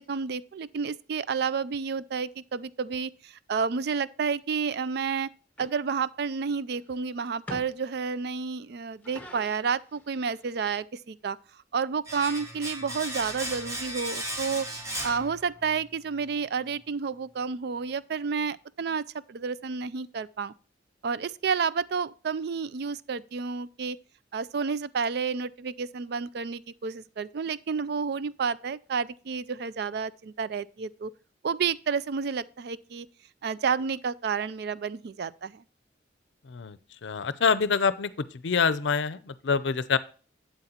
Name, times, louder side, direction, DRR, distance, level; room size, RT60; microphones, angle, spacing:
voice 1, 0.0-5.3 5.6-11.4 11.7-14.7 15.0-20.5 21.0-24.0 24.3-31.1 31.4-33.1 33.4-35.6, right 5 dB, 60° right, 0.4 m, -30 dB
sound 1, 5.6-5.7 6.8-6.9 7.5-7.9 8.9-10.6, left 2 dB, 10° left, 1.1 m, -44 dB
Domestic sounds home sounds, 12.0-15.9 16.1-16.3, right 1 dB, 15° right, 1.2 m, -36 dB
voice 2, 37.0-38.1 38.4-40.0, left 5 dB, 75° left, 0.5 m, -25 dB
8.1 x 7.9 x 2.9 m
head